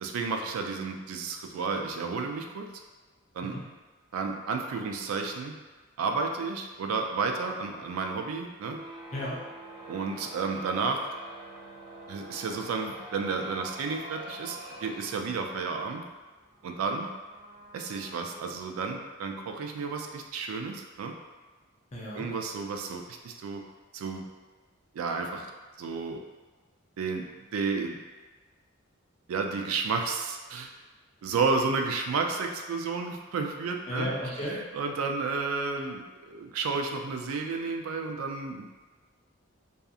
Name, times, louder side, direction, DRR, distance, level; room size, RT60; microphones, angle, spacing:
voice 1, 0.0-2.7 3.3-3.5 4.1-5.6 6.0-8.8 9.9-11.0 12.1-16.0 16.6-17.1 17.7-21.1 22.1-23.6 23.9-24.3 24.9-25.5 25.8-26.2 27.0-28.0 29.3-30.7 31.2-38.8, right 4 dB, 80° right, 3 dB, 0.3 m, -32 dB
sound 1, 8.6-18.9, right 1 dB, 25° right, 0.5 m, -46 dB
voice 2, 9.1-9.4 21.9-22.3 33.9-34.6, equal, 30° left, -5 dB, 0.5 m, -34 dB
2.7 x 2.4 x 2.4 m, 1.3 s
head